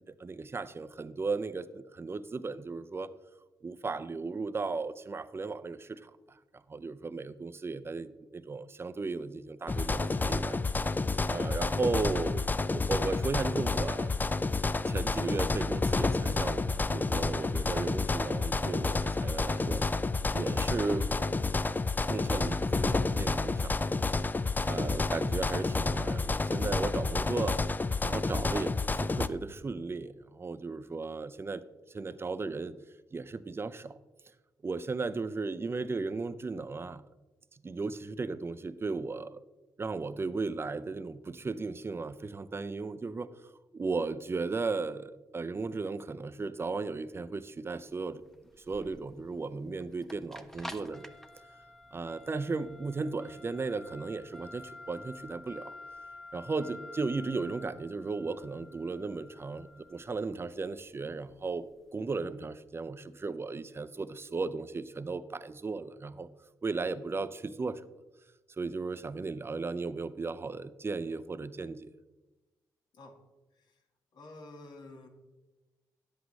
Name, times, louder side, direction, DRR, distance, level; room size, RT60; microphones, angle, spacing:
voice 1, 0.0-3.1 3.6-10.6 11.3-14.1 14.9-19.9 20.3-21.2 22.1-23.9 24.7-27.6 28.0-32.8 33.1-34.0 34.6-37.0 37.5-39.4 39.8-48.2 48.7-51.1 51.9-55.7 56.3-66.3 66.6-67.8 68.6-71.9, right 4 dB, 30° right, 14 dB, 0.5 m, -36 dB
sound 1, 9.7-29.3, left 3 dB, 25° left, 0.4 m, -30 dB
sound 2, 47.7-61.8, left 2 dB, 5° left, 0.9 m, -50 dB
voice 2, 73.5-73.8 74.1-75.1, left 2 dB, 65° left, 3 dB, 1.6 m, -50 dB
10.0 x 8.0 x 3.2 m, 1.1 s
supercardioid pair, 55°, 8 cm